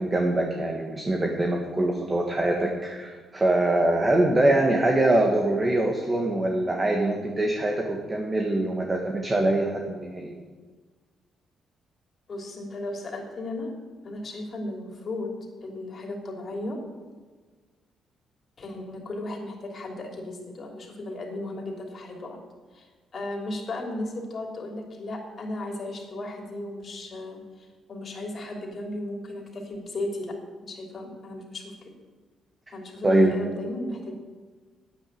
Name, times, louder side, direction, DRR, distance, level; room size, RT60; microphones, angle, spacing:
voice 1, 0.0-10.3 33.0-33.3, right 1 dB, 25° right, 1 dB, 1.6 m, -23 dB
voice 2, 12.3-13.7 14.0-15.3 15.6-16.8 18.6-22.4 22.7-22.9 23.1-31.9 32.7-34.1, left 1 dB, 45° left, 1 dB, 3.2 m, -35 dB
9.4 x 9.1 x 8.7 m, 1.4 s
cardioid pair, 90°, 0 cm